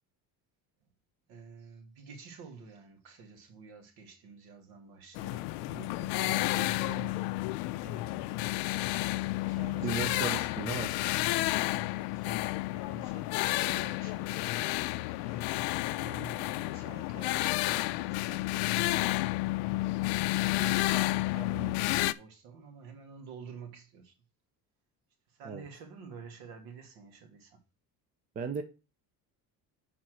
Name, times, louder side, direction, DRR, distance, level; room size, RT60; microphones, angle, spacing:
voice 1, 1.3-7.4 7.7-8.7 9.5-10.3 11.5-14.5 15.2-19.3 19.9-24.1 25.3-27.6, right 6 dB, 65° right, 2.3 m, -49 dB
sound 1, 5.1-22.1, left 19 dB, 80° left, 0.6 m, -31 dB
voice 2, 9.8-10.9 25.4-25.6 28.4-28.6, right 5 dB, 20° right, 0.5 m, -35 dB
7.3 x 4.3 x 6.2 m
cardioid pair, 175°, 39 cm